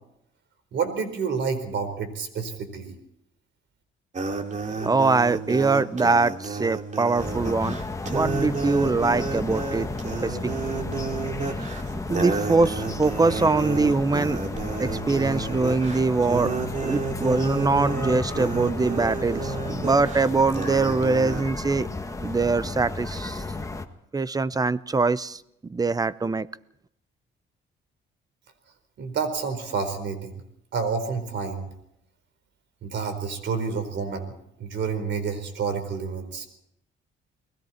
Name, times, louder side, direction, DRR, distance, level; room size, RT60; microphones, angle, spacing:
voice 1, 0.7-2.9 29.0-30.4 30.7-31.7 32.8-34.3 34.6-36.5, right 5 dB, 65° right, 9 dB, 4.4 m, -29 dB
sound 1, 4.1-21.4, right 4 dB, 40° right, 2.7 m, -31 dB
voice 2, 4.8-7.8 8.1-9.9 10.2-10.5 12.1-14.4 14.8-16.5 16.8-21.9 22.2-23.4 24.1-25.4 25.7-26.5, right 3 dB, 20° right, 17 dB, 0.7 m, -23 dB
sound 2, 7.2-23.9, left 2 dB, 15° left, 1.6 m, -33 dB
29.5 x 20.5 x 4.4 m, 0.78 s
cardioid pair, 90°, 20 cm